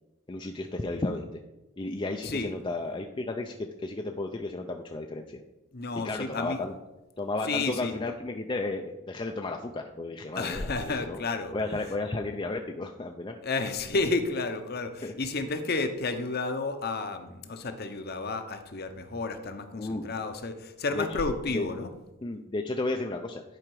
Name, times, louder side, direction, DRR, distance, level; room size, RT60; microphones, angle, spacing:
voice 1, 0.3-1.3 1.8-5.4 6.0-6.7 7.2-11.2 11.5-13.4 15.0-15.1 19.8-20.1 21.0-21.2 21.5-21.6 22.2-23.4, left 2 dB, 25° left, 3 dB, 0.4 m, -33 dB
voice 2, 2.2-2.5 5.7-6.6 7.4-7.9 10.3-11.5 13.4-21.9, left 3 dB, 45° left, 7 dB, 0.8 m, -31 dB
10.5 x 4.9 x 4.7 m, 1.0 s
head